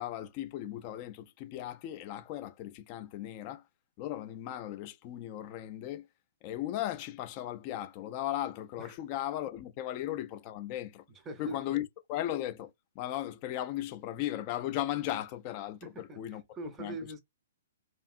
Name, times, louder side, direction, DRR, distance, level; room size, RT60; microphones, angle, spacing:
voice 1, 0.0-3.6 4.0-6.1 6.4-11.0 11.4-16.4 16.8-16.9, left 13 dB, 30° left, 0.4 m, -37 dB
voice 2, 11.2-11.8 15.8-17.2, right 2 dB, 15° right, 0.5 m, -42 dB
2.6 x 2.5 x 2.4 m
figure-of-eight pair, 120°, 0 cm